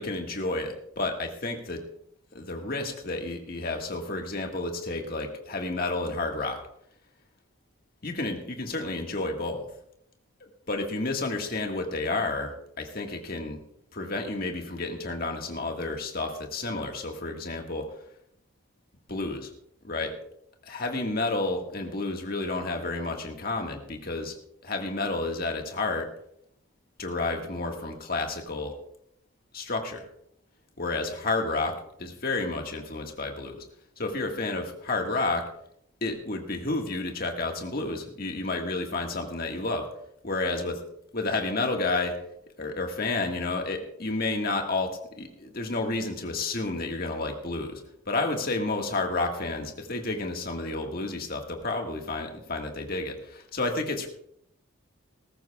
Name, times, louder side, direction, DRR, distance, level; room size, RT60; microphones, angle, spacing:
voice 1, 0.0-1.8 2.3-6.6 8.0-9.7 10.7-13.6 13.9-17.9 19.1-19.5 19.8-20.1 20.6-24.3 24.6-26.1 27.0-28.8 29.5-30.0 30.8-33.6 34.0-35.4 36.0-39.9 40.2-40.8 41.1-42.2 42.6-47.8 48.1-54.1, left 2 dB, 45° left, 3 dB, 1.7 m, -30 dB
19.5 x 13.5 x 2.4 m, 0.74 s
head